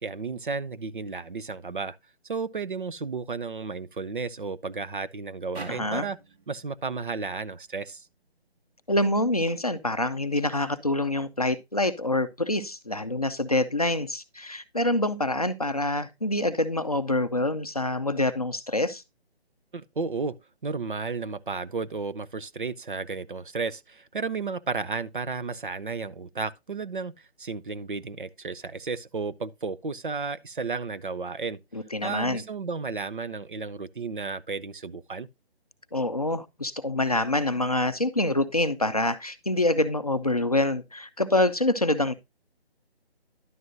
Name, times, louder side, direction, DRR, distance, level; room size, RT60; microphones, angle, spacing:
voice 1, 0.0-2.0 2.2-6.2 6.5-8.1 19.7-20.4 20.6-27.1 27.4-31.6 32.0-35.3, right 4 dB, 50° right, 0.5 m, -33 dB
sound 1, 5.5-8.8, right 3 dB, 75° right, 2.3 m, -47 dB
voice 2, 5.7-6.1 8.9-19.0 31.7-32.4 35.9-42.1, left 1 dB, 35° left, 0.5 m, -26 dB
11.0 x 7.7 x 2.6 m
hypercardioid pair, 180°, 32 cm